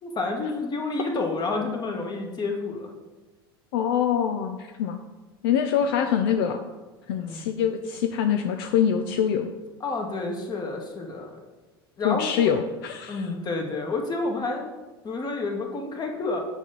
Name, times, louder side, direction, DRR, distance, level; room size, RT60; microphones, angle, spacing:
voice 1, 0.0-2.9 7.2-7.5 9.8-11.4 12.0-12.6 13.1-14.7 15.0-16.4, left 3 dB, 30° left, 2 dB, 1.6 m, -29 dB
voice 2, 3.7-5.0 5.4-6.6 7.1-9.5 12.0-13.2, left 8 dB, 70° left, 6 dB, 0.5 m, -24 dB
7.1 x 4.3 x 5.2 m, 1.2 s
hypercardioid pair, 80°, 13 cm